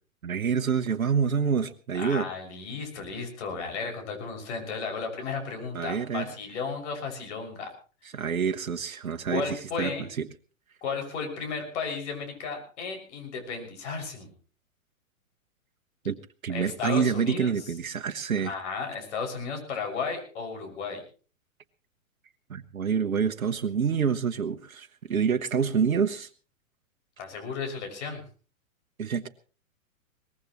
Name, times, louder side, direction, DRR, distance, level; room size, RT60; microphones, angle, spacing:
voice 1, 0.2-2.3 5.7-6.3 8.1-9.9 10.2-10.3 16.0-16.2 16.4-18.5 22.5-26.3 29.0-29.3, right 6 dB, 80° right, 6 dB, 1.1 m, -27 dB
voice 2, 1.9-7.7 9.3-10.0 10.8-14.3 16.5-17.7 18.4-21.0 27.2-28.2, left 5 dB, 55° left, 3 dB, 6.3 m, -34 dB
22.5 x 19.0 x 3.1 m, 0.39 s
figure-of-eight pair, 110°, 41 cm